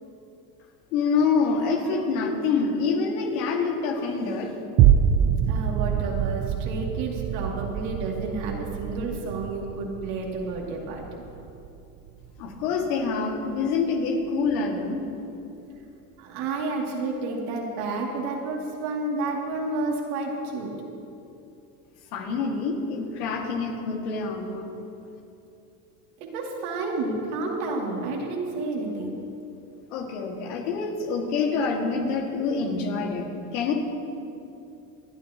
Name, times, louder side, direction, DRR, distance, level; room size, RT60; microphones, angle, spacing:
voice 1, 0.9-4.5 12.4-15.1 22.1-24.7 29.9-33.7, left 4 dB, 90° left, 1 dB, 2.2 m, -26 dB
sound 1, 4.8-13.3 13.8-13.9, right 9 dB, 50° right, 0.6 m, -25 dB
voice 2, 5.5-11.3 16.2-20.7 26.2-29.1, right 3 dB, 80° right, -2 dB, 2.7 m, -30 dB
28.0 x 9.6 x 3.0 m, 2.7 s
supercardioid pair, 100°, 43 cm